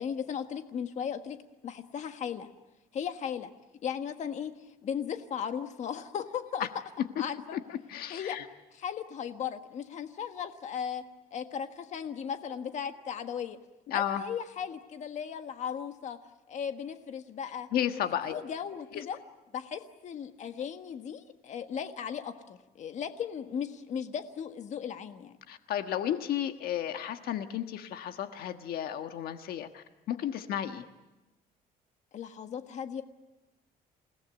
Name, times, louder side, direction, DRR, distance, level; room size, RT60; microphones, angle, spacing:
voice 1, 0.0-1.4 1.6-2.5 2.9-3.5 3.8-6.7 7.2-7.6 8.1-8.4 8.7-11.0 11.3-13.6 13.9-16.2 16.5-17.7 18.3-19.2 19.5-25.3 32.1-33.0, left 8 dB, 45° left, 7 dB, 1.5 m, -36 dB
voice 2, 7.5-8.4 13.9-14.2 17.7-18.4 18.9-19.0 25.5-30.8, left 10 dB, 70° left, 7 dB, 1.4 m, -33 dB
28.5 x 18.0 x 9.4 m, 1.0 s
cardioid pair, 150°, 16 cm